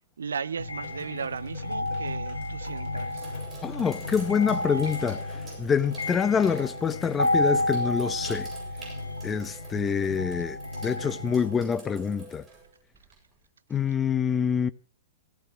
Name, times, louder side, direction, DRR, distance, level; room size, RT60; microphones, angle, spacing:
voice 1, 0.2-3.3, right 6 dB, 65° right, 0.7 m, -36 dB
sound 1, 0.6-11.7, left 1 dB, 85° left, 3.3 m, -31 dB
sound 2, 0.8-7.5, left 6 dB, 40° left, 5.5 m, -50 dB
Sink (filling or washing), 2.6-13.4, right 4 dB, 15° right, 7.8 m, -48 dB
voice 2, 3.6-8.5 9.2-12.4 13.7-14.7, left 7 dB, 15° left, 0.8 m, -26 dB
16.5 x 15.5 x 4.7 m
figure-of-eight pair, 105°, 0 cm